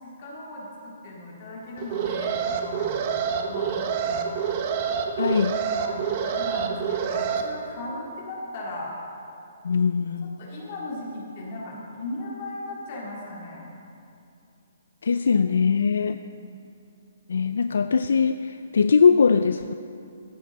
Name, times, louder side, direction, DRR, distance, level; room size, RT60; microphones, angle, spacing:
voice 1, 0.0-3.0 3.3-4.4 5.8-8.9 10.4-13.7, left 2 dB, 45° left, -4 dB, 3.7 m, -37 dB
Alarm, 1.8-7.4, right 7 dB, 35° right, 1.1 m, -27 dB
voice 2, 5.2-5.6 9.6-10.4 15.0-16.2 17.3-19.7, left 5 dB, 80° left, 10 dB, 0.4 m, -21 dB
15.0 x 8.5 x 5.5 m, 2.6 s
hypercardioid pair, 155°, 0 cm